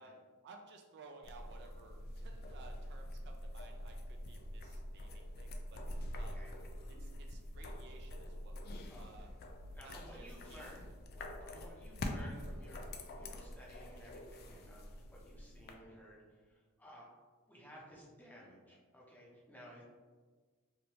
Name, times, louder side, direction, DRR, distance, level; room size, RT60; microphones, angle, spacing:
voice 1, 0.0-5.8 6.1-6.4 6.9-9.3 9.8-10.7 18.7-18.8, right 3 dB, 50° right, 3 dB, 0.3 m, -57 dB
sound 1, 1.2-15.7, left 1 dB, 45° left, 0.3 m, -45 dB
voice 2, 8.9-9.3 9.7-10.9 11.1-17.1 17.5-19.8, equal, 10° left, -4 dB, 0.6 m, -56 dB
3.1 x 2.5 x 3.0 m, 1.5 s
head